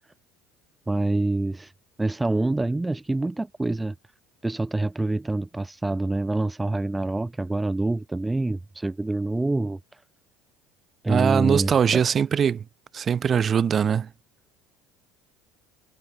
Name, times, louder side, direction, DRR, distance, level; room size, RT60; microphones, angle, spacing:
voice 1, 0.9-1.7 2.0-3.9 4.4-9.8 11.0-12.0, right 2 dB, 10° right, 1.6 m, -26 dB
voice 2, 11.1-12.6 12.9-14.1, right 7 dB, 40° right, 2.8 m, -21 dB
supercardioid pair, 90°, 0 cm